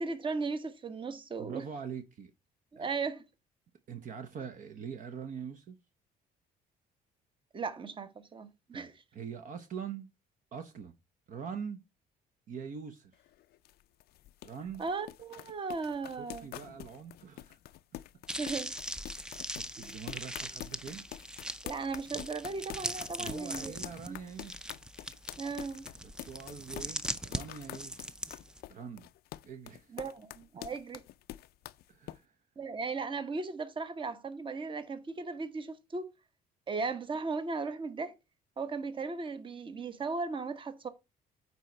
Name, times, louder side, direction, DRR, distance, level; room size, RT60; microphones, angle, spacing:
voice 1, 0.0-1.7 2.7-3.2 7.5-9.0 14.8-16.5 18.4-18.7 19.8-20.0 21.6-23.7 24.1-24.2 25.4-25.9 29.9-31.0 32.6-36.1 36.7-38.1 38.6-40.9, right 4 dB, 30° right, 1.1 m, -37 dB
voice 2, 1.4-2.3 2.8-2.9 3.9-5.8 8.7-10.1 10.5-10.9 11.3-11.8 12.5-13.2 14.4-14.8 16.1-17.6 19.1-19.2 19.6-21.1 23.2-24.7 26.0-28.0 28.7-29.1 29.4-30.0 31.9-32.4, right 7 dB, 50° right, 0.9 m, -43 dB
sound 1, 13.1-32.2, left 15 dB, 70° left, 0.4 m, -47 dB
sound 2, 18.3-28.6, right 1 dB, 5° right, 0.5 m, -40 dB
9.2 x 4.2 x 4.5 m
cardioid pair, 110°, 17 cm